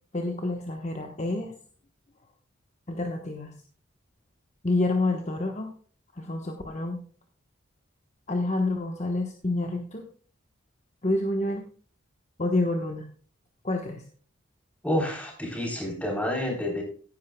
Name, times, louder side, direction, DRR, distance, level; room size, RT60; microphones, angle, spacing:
voice 1, 0.1-1.5 2.9-3.5 4.6-5.7 6.1-7.0 8.3-10.1 11.0-11.7 12.4-13.1 13.6-14.0, left 2 dB, 35° left, 3 dB, 1.1 m, -28 dB
voice 2, 14.8-16.8, left 1 dB, 5° left, 0 dB, 3.5 m, -29 dB
15.5 x 10.5 x 2.2 m, 0.44 s
head